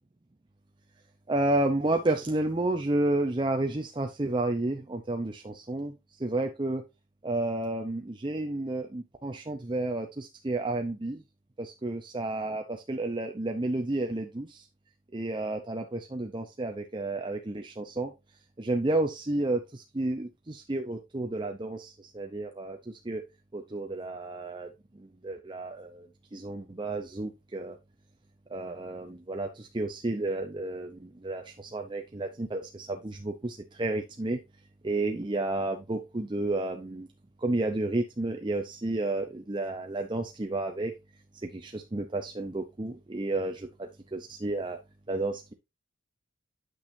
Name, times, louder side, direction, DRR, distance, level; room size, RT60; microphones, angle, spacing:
voice 1, 1.3-5.9 6.2-6.8 7.2-11.2 11.6-14.7 15.1-18.1 18.6-23.2 23.5-27.8 28.5-34.4 34.8-37.1 37.4-40.9 41.4-44.8 45.1-45.5, right 2 dB, 25° right, 4 dB, 0.6 m, -31 dB
8.8 x 6.2 x 2.6 m, 0.23 s
head